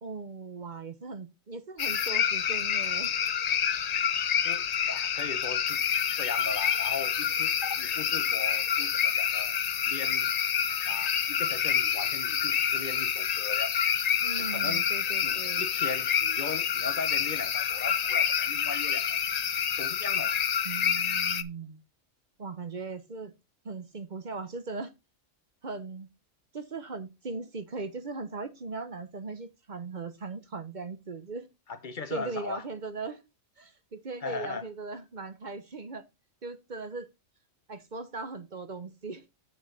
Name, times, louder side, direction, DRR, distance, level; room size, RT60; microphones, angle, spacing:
voice 1, 0.0-3.2 14.2-15.6 20.6-21.8 22.4-23.3 23.6-24.9 25.6-26.1 26.5-31.5 32.1-33.2 33.6-36.0 36.4-37.1 37.7-39.2, right 4 dB, 40° right, 0.9 m, -39 dB
sound 1, 1.8-21.4, left 8 dB, 60° left, 0.4 m, -28 dB
voice 2, 4.4-5.8 6.2-9.6 9.9-10.3 10.9-13.7 14.4-14.9 15.2-19.2 19.8-20.4 20.8-20.9 31.7-32.6 34.2-34.7, left 4 dB, 40° left, 0.9 m, -38 dB
7.9 x 6.6 x 3.9 m
omnidirectional pair, 1.4 m